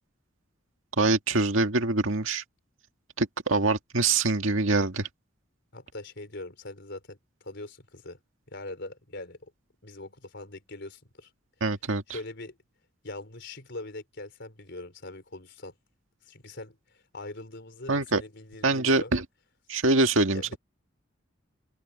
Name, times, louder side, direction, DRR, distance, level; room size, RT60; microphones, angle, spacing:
voice 1, 1.0-2.4 3.2-5.1 11.6-12.0 17.9-18.2 18.6-19.2 19.7-20.6, right 3 dB, 85° right, 1.9 m, -24 dB
voice 2, 5.7-8.2 8.5-9.5 9.8-11.3 12.1-12.6 13.0-15.7 16.2-19.1 20.3-20.6, left 2 dB, 60° left, 4.2 m, -42 dB
head